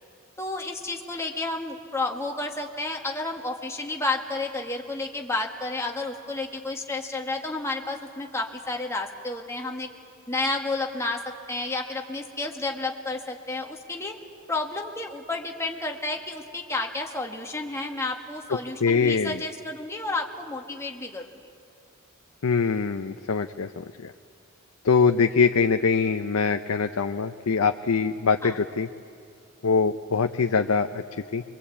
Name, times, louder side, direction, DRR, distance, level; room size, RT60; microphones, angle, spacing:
voice 1, 0.4-9.9 10.3-14.2 14.5-21.3 28.4-28.6, left 2 dB, 15° left, 1 dB, 1.8 m, -31 dB
voice 2, 18.8-19.4 22.4-24.1 24.8-28.9 29.6-31.4, left 5 dB, 90° left, 7 dB, 0.7 m, -23 dB
25.0 x 23.0 x 8.5 m, 2.3 s
head